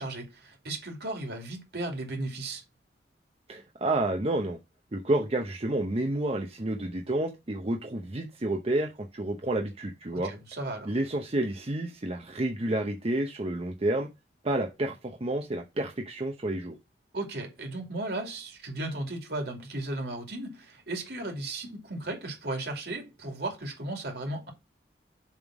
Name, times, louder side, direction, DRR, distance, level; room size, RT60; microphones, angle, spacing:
voice 1, 0.0-2.6 10.1-10.9 17.1-24.5, right 2 dB, 65° right, 2.6 m, -35 dB
voice 2, 3.5-4.6 4.9-10.3 10.9-14.1 14.4-16.7, right 1 dB, 35° right, 0.8 m, -30 dB
7.2 x 3.7 x 6.0 m
head